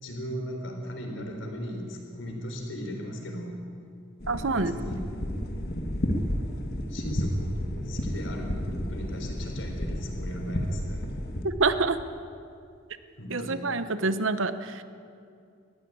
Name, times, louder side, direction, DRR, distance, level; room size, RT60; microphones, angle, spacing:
voice 1, 0.0-3.6 4.5-5.1 6.9-11.0 13.2-13.6, equal, 75° left, 3 dB, 3.9 m, -37 dB
sound 1, 4.2-11.5, equal, 55° left, 1.9 m, -31 dB
voice 2, 4.3-4.7 11.4-12.0 13.3-14.8, right 3 dB, 90° right, 12 dB, 1.0 m, -26 dB
20.5 x 15.0 x 8.7 m, 2.4 s
head